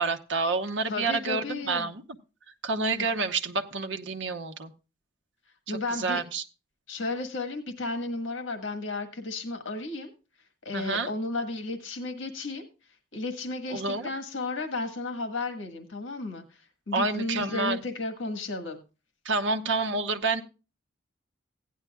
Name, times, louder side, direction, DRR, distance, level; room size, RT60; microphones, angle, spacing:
voice 1, 0.0-2.0 2.6-4.7 5.7-6.4 10.7-11.1 13.7-14.1 16.9-17.8 19.2-20.4, right 3 dB, 75° right, 0.9 m, -28 dB
voice 2, 0.9-1.9 5.7-6.2 6.9-10.1 10.6-12.6 13.1-16.4 16.9-18.8, left 2 dB, 90° left, 1.5 m, -33 dB
16.0 x 10.0 x 2.3 m
head